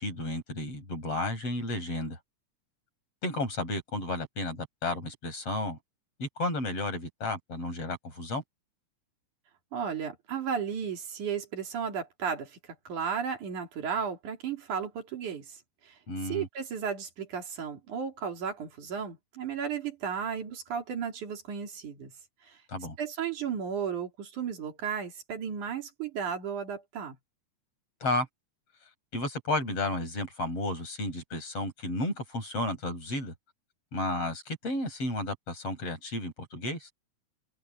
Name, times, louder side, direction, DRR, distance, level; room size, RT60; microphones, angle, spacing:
voice 1, 0.0-2.2 3.2-5.8 6.2-8.4 16.1-16.5 22.7-23.0 28.0-28.3 29.1-33.3 33.9-36.9, left 1 dB, 50° left, 8.2 m, -32 dB
voice 2, 9.7-12.6 12.9-15.6 15.8-15.9 16.2-22.1 22.5-22.6 23.0-27.2, right 7 dB, 80° right, 4.4 m, -34 dB
open air
omnidirectional pair, 3.5 m